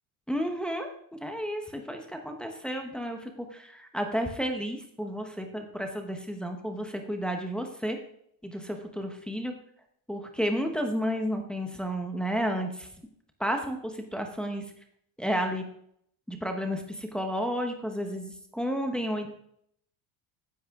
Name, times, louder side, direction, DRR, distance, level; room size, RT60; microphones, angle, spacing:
voice 1, 0.3-8.0 8.4-9.5 10.1-12.9 13.4-14.6 15.2-15.7 16.3-19.3, equal, ahead, 4 dB, 0.9 m, -32 dB
14.0 x 10.0 x 3.6 m, 0.69 s
cardioid pair, 180°, 49 cm